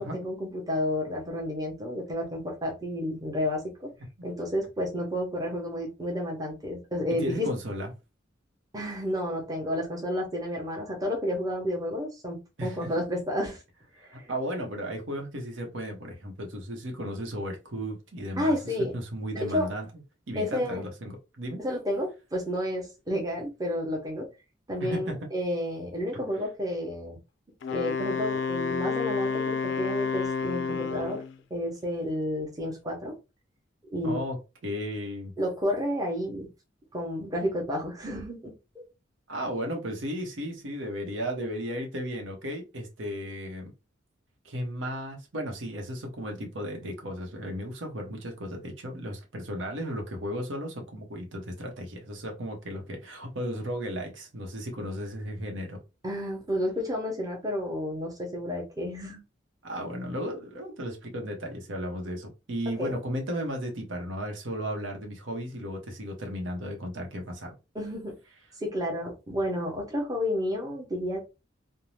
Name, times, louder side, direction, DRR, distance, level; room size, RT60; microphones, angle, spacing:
voice 1, 0.0-3.9 4.2-7.5 8.7-13.6 14.0-14.3 18.4-19.0 19.3-19.7 20.3-20.8 21.6-24.3 24.7-27.2 27.7-31.2 31.5-33.1 33.9-34.2 35.4-36.5 36.9-38.8 56.0-59.2 62.8-63.0 67.7-68.2 68.6-71.2, left 1 dB, 20° right, 0.8 m, -31 dB
voice 2, 7.2-7.9 12.6-12.9 14.3-19.9 20.3-21.6 24.8-25.2 34.0-34.4 34.6-35.3 39.3-43.7 44.4-55.8 59.6-67.5, equal, 85° right, 0.9 m, -35 dB
Wind instrument woodwind instrument, 27.6-31.4, left 5 dB, 70° left, 0.3 m, -30 dB
2.6 x 2.1 x 3.1 m
head